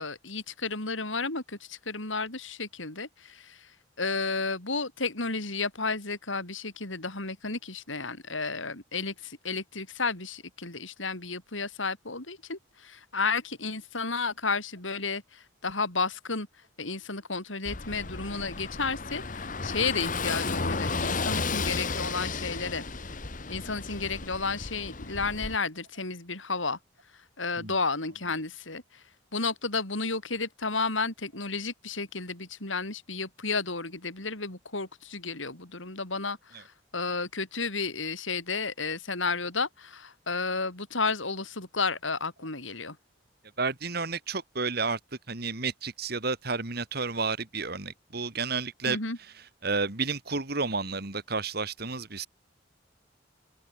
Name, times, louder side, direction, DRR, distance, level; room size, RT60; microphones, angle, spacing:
voice 1, 0.0-3.7 4.0-16.5 16.8-22.8 23.5-26.8 27.4-29.0 29.3-43.0 48.9-49.2, left 4 dB, 85° left, 5.6 m, -32 dB
Car passing by / Engine, 17.7-25.6, left 4 dB, 45° left, 1.5 m, -33 dB
voice 2, 43.6-45.0 45.3-49.0 49.6-52.3, right 4 dB, 55° right, 2.3 m, -31 dB
open air
head